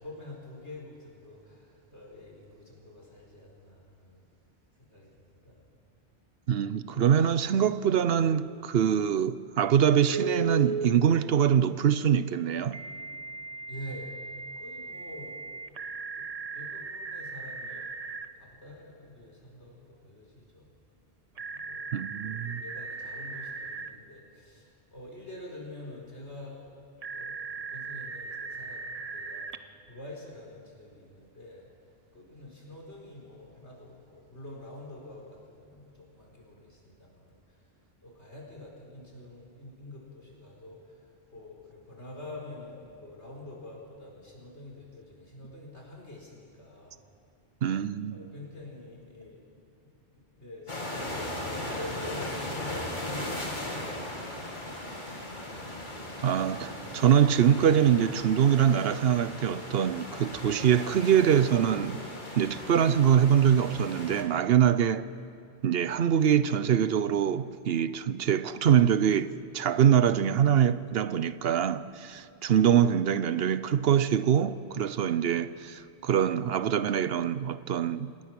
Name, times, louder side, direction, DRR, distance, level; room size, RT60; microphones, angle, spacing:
voice 1, 0.0-4.2 4.8-5.6 13.7-14.1 14.6-15.7 16.1-16.2 16.5-17.8 18.4-20.7 21.4-22.0 22.2-26.7 27.1-31.7 32.1-37.6 38.0-46.9 48.1-49.4 49.8-50.8 51.3-54.9, left 1 dB, 90° left, 4.8 m, -46 dB
voice 2, 6.5-12.8 21.9-22.6 47.6-48.3 56.2-62.0 62.4-65.1 65.6-78.1, right 9 dB, 65° right, 0.9 m, -24 dB
Telephone, 10.1-10.9 12.7-18.3 21.4-23.9 27.0-29.6, right 4 dB, 40° right, 0.8 m, -37 dB
sound 1, 50.7-64.2, left 1 dB, 45° left, 2.8 m, -38 dB
25.5 x 18.5 x 6.1 m
omnidirectional pair, 1.1 m